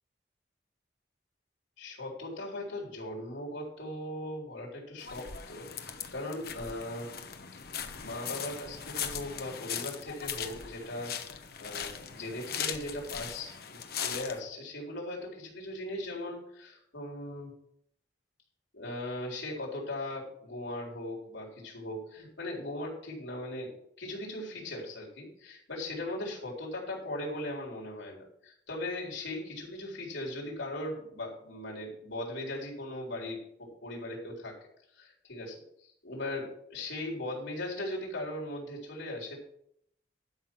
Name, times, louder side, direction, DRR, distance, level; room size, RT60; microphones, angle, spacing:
voice 1, 1.8-7.1 8.0-11.1 11.6-17.5 18.7-34.5 35.0-39.4, left 1 dB, 85° left, -2 dB, 3.9 m, -39 dB
sound 1, 5.0-14.4, left 8 dB, 55° left, 0.9 m, -39 dB
12.0 x 5.8 x 6.0 m, 0.72 s
head